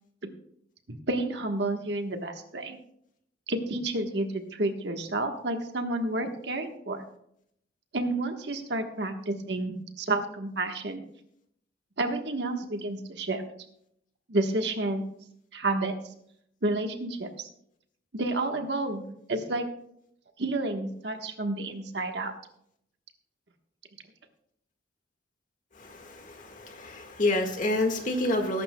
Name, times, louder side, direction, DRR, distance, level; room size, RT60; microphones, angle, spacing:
voice 1, 0.9-2.8 3.5-7.0 7.9-11.0 12.0-13.4 14.3-15.0 15.5-15.9 16.6-17.5 18.1-19.0 19.3-19.6 20.4-22.3, right 2 dB, 65° right, 5 dB, 1.3 m, -30 dB
voice 2, 25.7-28.6, left 2 dB, 45° left, 4 dB, 1.7 m, -28 dB
20.5 x 11.0 x 2.3 m, 0.73 s
head